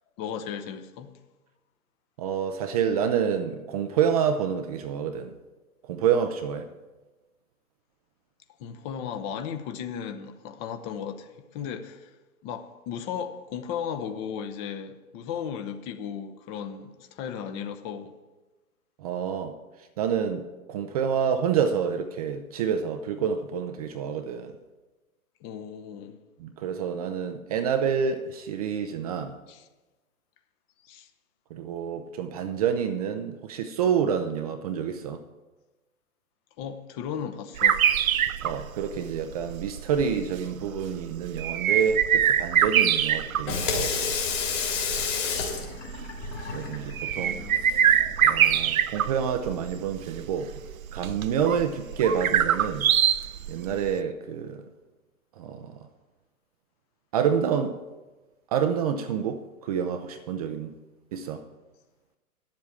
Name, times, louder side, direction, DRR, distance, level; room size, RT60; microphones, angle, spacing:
voice 1, 0.2-1.1 8.6-12.1 12.4-18.1 25.4-26.2 29.5-29.6 30.8-31.1 36.6-37.8 47.2-47.6, left 8 dB, 25° left, 0.8 m, -35 dB
voice 2, 2.2-5.3 5.9-6.7 19.0-19.5 20.0-24.6 26.4-29.4 31.5-35.2 38.4-44.2 46.5-47.4 48.2-50.5 50.9-52.9 53.5-54.6 55.4-55.7 57.1-57.8 58.5-60.7 61.1-61.4, right 7 dB, 30° right, 0.5 m, -28 dB
sound 1, 37.6-53.9, right 9 dB, 70° right, 0.6 m, -25 dB
Water tap faucet / Sink (filling or washing), 43.3-48.8, left 6 dB, 55° left, 3.3 m, -31 dB
10.0 x 7.5 x 7.2 m
figure-of-eight pair, 115°, 43 cm